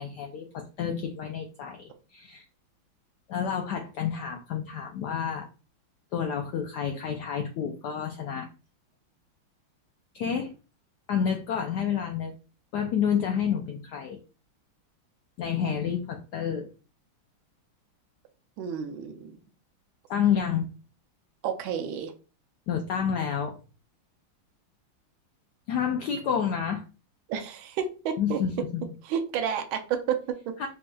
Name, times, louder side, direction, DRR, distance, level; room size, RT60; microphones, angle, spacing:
voice 1, 0.0-2.4 3.3-5.5 6.1-8.5 10.1-10.5 11.1-12.4 12.7-14.2 15.4-16.7 20.1-20.7 22.7-23.6 25.7-26.8 28.2-28.8 30.6-30.7, left 8 dB, 80° left, 0.9 m, -29 dB
voice 2, 18.6-19.3 21.4-22.1 27.3-28.4 29.0-30.5, right 8 dB, 80° right, 1.4 m, -30 dB
5.2 x 2.7 x 2.3 m
omnidirectional pair, 2.3 m